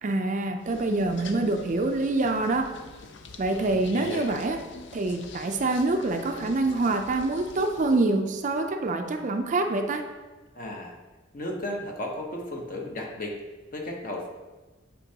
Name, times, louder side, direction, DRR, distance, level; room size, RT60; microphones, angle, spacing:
voice 1, 0.0-2.7 3.4-4.6 4.9-10.0, right 2 dB, 40° right, 5 dB, 0.4 m, -26 dB
sound 1, 0.6-8.0, left 3 dB, 60° left, 0.5 m, -43 dB
voice 2, 10.5-11.0 11.3-13.3 13.7-14.3, left 1 dB, 45° left, 0 dB, 0.9 m, -34 dB
8.0 x 4.4 x 2.9 m, 1.2 s
head